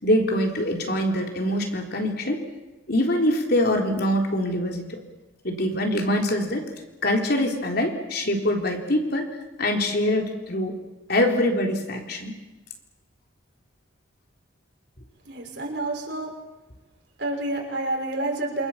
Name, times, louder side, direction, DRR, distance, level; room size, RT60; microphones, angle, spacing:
voice 1, 0.0-2.4 2.9-5.0 5.4-6.7 7.0-9.3 9.6-10.8 11.1-12.3, left 1 dB, 55° left, 2 dB, 3.9 m, -24 dB
voice 2, 15.2-16.3 17.2-18.7, right 2 dB, 60° right, 0 dB, 6.3 m, -29 dB
28.0 x 26.0 x 7.5 m, 1.1 s
head